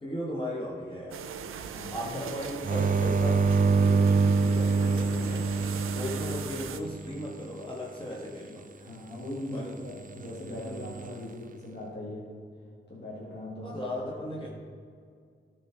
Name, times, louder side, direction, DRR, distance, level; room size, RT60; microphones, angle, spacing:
voice 1, 0.0-1.2 1.9-5.5 5.9-8.7 9.5-9.7 13.6-14.5, left 1 dB, 25° left, -3 dB, 1.4 m, -37 dB
sound 1, 1.1-6.8, right 7 dB, 85° right, 0.5 m, -39 dB
voice 2, 1.6-2.3 6.0-6.1 8.8-12.3 12.9-13.7 14.2-14.3, left 1 dB, 55° left, -6 dB, 2.0 m, -40 dB
sound 2, 2.6-7.3 10.5-11.1, right 4 dB, 40° right, 0.6 m, -25 dB
12.5 x 4.3 x 4.5 m, 2.2 s
cardioid pair, 55°, 21 cm